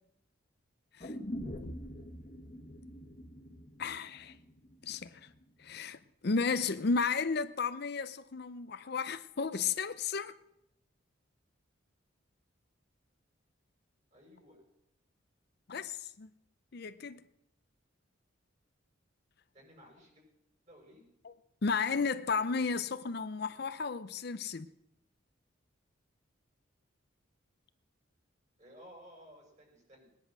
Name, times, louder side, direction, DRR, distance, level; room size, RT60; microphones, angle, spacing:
sound 1, 1.0-5.0 5.3-5.4, equal, 35° left, 1.5 m, -44 dB
voice 1, 3.8-4.3 4.8-5.3 5.6-10.4 15.7-16.3 16.7-17.2 21.2-21.3 21.6-24.7, left 5 dB, 50° left, 0.6 m, -33 dB
voice 2, 14.1-14.6 19.5-20.2 20.7-21.0 28.6-30.1, equal, 35° right, 6.1 m, -56 dB
20.0 x 10.5 x 6.1 m
head